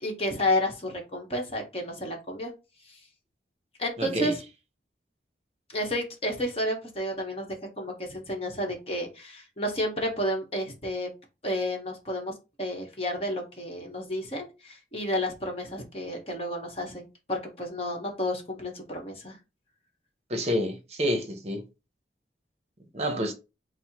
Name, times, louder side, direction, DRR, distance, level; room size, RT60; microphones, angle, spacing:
voice 1, 0.0-2.5 2.9-3.0 3.8-4.4 5.7-11.1 11.4-19.4, left 1 dB, 35° left, 1.1 m, -31 dB
voice 2, 4.0-4.3 20.3-21.6 22.9-23.3, equal, 35° right, 0.7 m, -28 dB
4.3 x 2.1 x 4.5 m
head